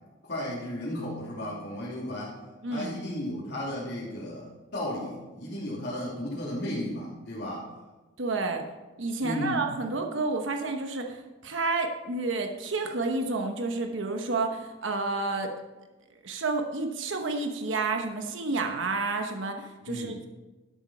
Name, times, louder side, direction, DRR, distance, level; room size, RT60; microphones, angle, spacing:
voice 1, 0.2-2.3 2.7-7.7 9.2-9.6 19.9-20.2, left 1 dB, 55° left, -9 dB, 3.1 m, -34 dB
voice 2, 2.6-2.9 8.2-8.6 9.0-15.5 16.2-20.3, right 3 dB, 75° right, 4 dB, 1.0 m, -30 dB
12.0 x 8.1 x 4.4 m, 1.2 s
head